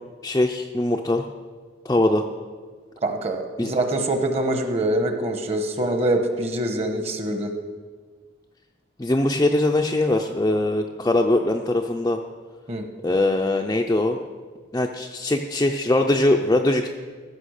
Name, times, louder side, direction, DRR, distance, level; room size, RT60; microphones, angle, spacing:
voice 1, 0.2-1.3 1.8-2.3 3.6-3.7 9.0-12.2 13.0-14.2 14.7-16.9, left 1 dB, 15° left, 1 dB, 0.4 m, -21 dB
voice 2, 3.0-7.5 12.7-12.9, right 1 dB, 30° right, 5 dB, 1.1 m, -24 dB
15.0 x 6.1 x 6.5 m, 1.5 s
head